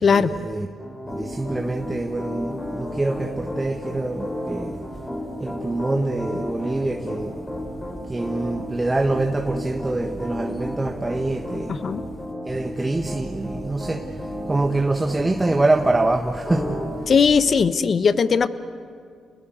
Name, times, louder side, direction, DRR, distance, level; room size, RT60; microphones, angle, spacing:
voice 1, 0.0-0.7 1.1-4.8 5.4-7.4 8.1-11.8 12.4-16.9, right 2 dB, 20° right, 1.4 m, -25 dB
Piano, 0.8-16.0 16.4-16.8, left 1 dB, 25° left, 7.9 m, -33 dB
voice 2, 11.7-12.0 17.1-18.5, left 6 dB, 55° left, 1.0 m, -18 dB
28.5 x 20.5 x 8.1 m
supercardioid pair, 50°, 0 cm